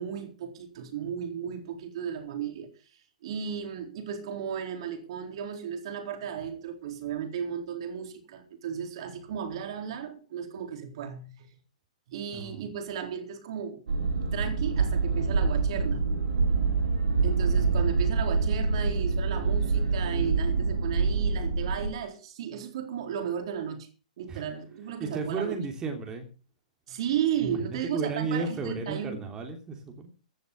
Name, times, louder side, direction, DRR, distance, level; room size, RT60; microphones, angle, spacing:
voice 1, 0.0-2.7 3.2-11.5 12.1-13.8 14.3-16.0 17.2-23.9 24.2-25.5 26.9-29.2, right 8 dB, 50° right, 4.0 m, -34 dB
voice 2, 12.3-12.6 24.3-24.4 25.0-26.3 27.5-30.2, right 4 dB, 15° right, 3.1 m, -33 dB
sound 1, 13.9-21.9, right 4 dB, 65° right, 5.2 m, -26 dB
15.5 x 11.0 x 5.4 m
figure-of-eight pair, 110°, 4 cm